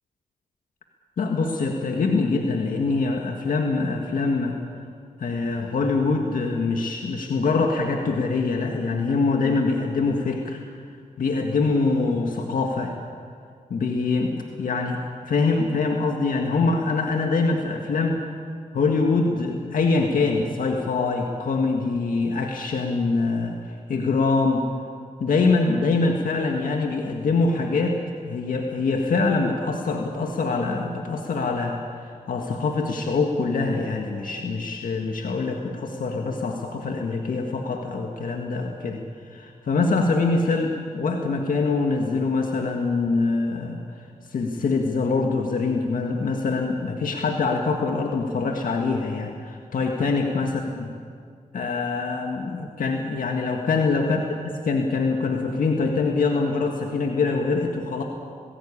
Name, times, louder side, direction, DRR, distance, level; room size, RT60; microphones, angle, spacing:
voice 1, 1.2-4.6 5.2-10.6 11.2-12.9 13.7-15.0 15.3-18.2 18.7-23.6 23.9-24.7 25.2-43.8 44.3-50.5 51.5-54.2 54.7-58.0, left 3 dB, 70° left, 2 dB, 1.9 m, -24 dB
20.5 x 16.5 x 8.7 m, 2.2 s
cardioid pair, 55°, 15 cm